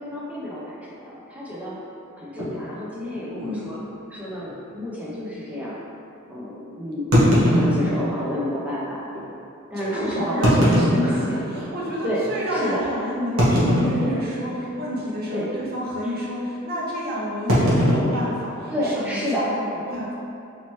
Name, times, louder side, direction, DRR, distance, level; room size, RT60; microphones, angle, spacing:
voice 1, 0.0-1.8 2.2-3.8 4.1-5.8 6.3-9.1 9.7-10.7 11.0-11.2 12.0-12.8 15.3-15.5 16.0-16.1 18.7-19.5, equal, 5° right, -7 dB, 0.5 m, -30 dB
sound 1, 2.4-2.6 3.3-3.4 3.7-3.8 4.4-4.5 7.1-8.3 9.1-9.2 10.3-11.7 12.2-12.3 13.4-14.5 14.8-15.1 15.4-15.7 17.5-19.1, equal, 75° right, 1.0 m, -20 dB
voice 2, 3.4-3.7 9.7-20.1, equal, 50° right, -6 dB, 0.9 m, -29 dB
4.2 x 2.9 x 3.0 m, 2.6 s
head